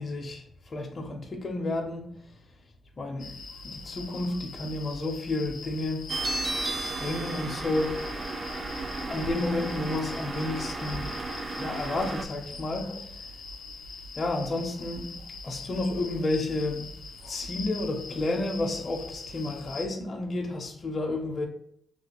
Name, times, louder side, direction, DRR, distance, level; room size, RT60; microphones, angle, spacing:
voice 1, 0.0-2.0 3.0-3.3 3.6-6.0 7.0-8.0 9.1-11.1 11.6-13.0 14.2-15.1 15.4-16.8 17.3-21.5, left 2 dB, 35° left, 0.4 m, -31 dB
sound 1, 3.2-19.9, left 3 dB, 90° left, 0.5 m, -42 dB
sound 2, 6.1-12.2, right 2 dB, 35° right, 0.3 m, -34 dB
2.9 x 2.8 x 2.8 m
cardioid pair, 120°, 0 cm